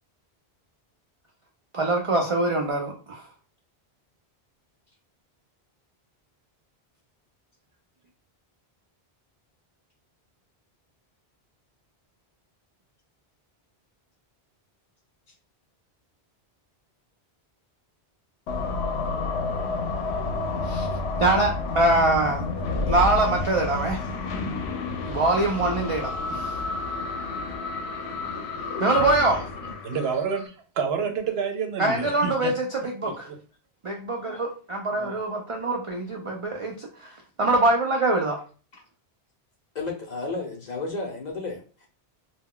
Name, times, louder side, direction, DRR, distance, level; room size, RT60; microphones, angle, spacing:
voice 1, 1.7-3.3 20.6-20.9 21.2-22.4 22.9-24.0 25.1-26.6 28.8-29.5 31.8-33.3 33.8-38.4, right 2 dB, 50° right, 0.4 m, -24 dB
sound 1, 18.5-30.5, left 3 dB, 85° left, 0.8 m, -30 dB
voice 2, 29.6-32.5 33.0-33.4 34.9-35.2, right 6 dB, 75° right, 0.8 m, -29 dB
voice 3, 39.7-41.9, left 3 dB, 50° left, 0.6 m, -32 dB
2.2 x 2.2 x 3.6 m
omnidirectional pair, 1.1 m